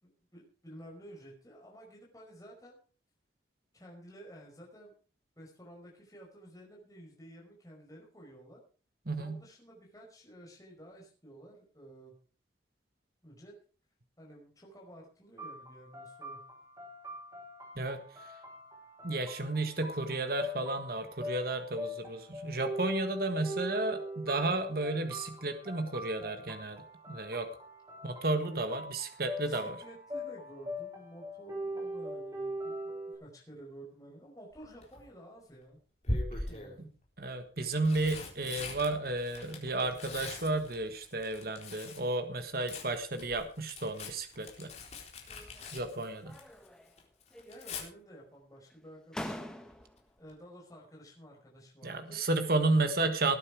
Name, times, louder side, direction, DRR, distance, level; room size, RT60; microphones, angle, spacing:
voice 1, 0.0-2.8 3.7-4.9 5.4-8.6 9.1-12.1 13.2-13.5 14.2-16.4 28.5-28.9 29.4-35.8 36.3-36.9 47.4-49.7 50.2-52.2, right 1 dB, 20° left, -1 dB, 5.1 m, -52 dB
voice 2, 9.1-9.4 17.8-18.0 19.0-26.8 27.1-27.5 28.0-29.7 37.2-44.7 45.7-46.3 51.8-53.4, right 2 dB, 55° right, 8 dB, 1.6 m, -32 dB
sound 1, 15.4-33.1, equal, 15° right, 5.7 m, -42 dB
Tearing, 34.5-35.0 36.0-36.8 37.6-42.1 42.4-46.7 47.0-47.8 49.7-50.0 50.3-50.4, left 2 dB, 35° left, 3.9 m, -41 dB
sound 2, 45.3-45.9 46.2-47.0 47.3-48.1 48.7-48.8 49.1-50.1, equal, 5° left, 1.3 m, -45 dB
19.0 x 9.6 x 4.8 m, 0.38 s
head